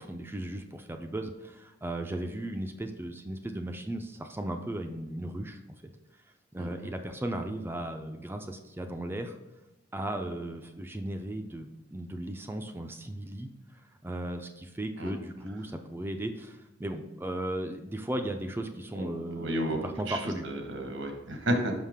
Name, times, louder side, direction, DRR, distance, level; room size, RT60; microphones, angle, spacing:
voice 1, 0.0-5.8 6.5-9.4 9.9-13.5 14.0-20.5, right 1 dB, 10° right, 5 dB, 0.4 m, -36 dB
voice 2, 6.6-6.9 15.0-15.1 19.0-19.1 19.3-21.7, right 1 dB, 85° right, 4 dB, 1.1 m, -32 dB
5.6 x 5.5 x 3.5 m, 1.0 s
head